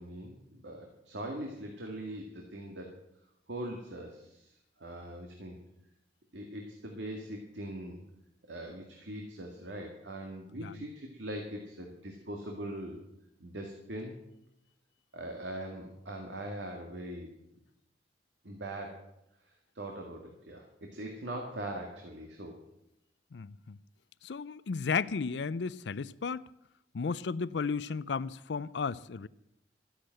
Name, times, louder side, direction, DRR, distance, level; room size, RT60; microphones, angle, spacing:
voice 1, 0.0-3.0 3.5-5.6 6.3-8.0 8.5-13.0 13.4-14.2 15.1-17.3 18.4-19.1 19.7-22.5, right 1 dB, 85° right, 2.0 m, -41 dB
voice 2, 23.3-23.8 24.2-26.5 26.9-29.3, left 5 dB, 75° left, 0.5 m, -34 dB
14.0 x 10.0 x 7.7 m
head